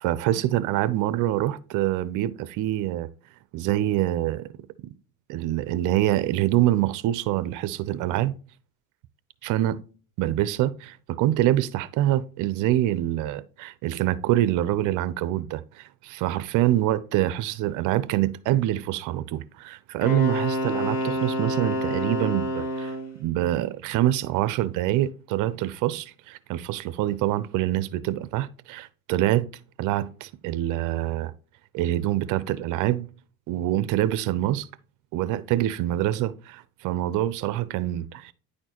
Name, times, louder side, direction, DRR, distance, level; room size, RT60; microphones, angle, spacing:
voice 1, 0.0-3.1 3.5-4.5 5.3-8.3 9.4-9.8 10.2-29.5 29.8-31.3 31.7-33.1 33.5-34.7 35.1-38.3, right 14 dB, 65° right, 0.7 m, -25 dB
Wind instrument woodwind instrument, 20.0-23.2, equal, 50° left, 3.8 m, -28 dB
9.8 x 4.4 x 3.0 m
cardioid pair, 145°, 33 cm